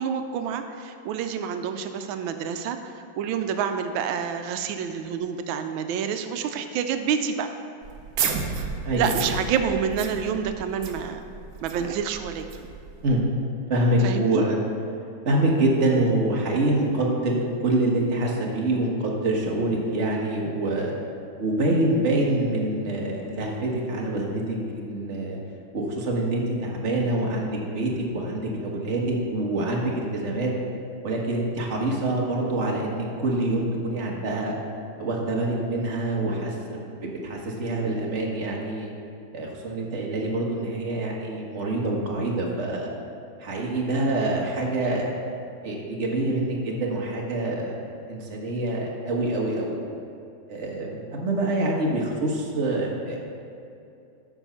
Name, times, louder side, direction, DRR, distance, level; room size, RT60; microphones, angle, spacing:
voice 1, 0.0-7.5 9.0-11.2 11.6-12.5 14.0-14.4, right 7 dB, 90° right, 7 dB, 1.4 m, -28 dB
sound 1, 7.8-13.2, right 6 dB, 60° right, 1.0 m, -32 dB
voice 2, 13.7-14.6 15.2-20.9 21.4-25.4 25.7-30.5 31.0-34.6 35.0-38.9 39.3-42.9 43.4-45.1 45.6-47.8 48.1-49.8 50.5-53.2, right 1 dB, 40° right, -2 dB, 1.5 m, -26 dB
9.0 x 6.2 x 5.6 m, 2.6 s
omnidirectional pair, 2.1 m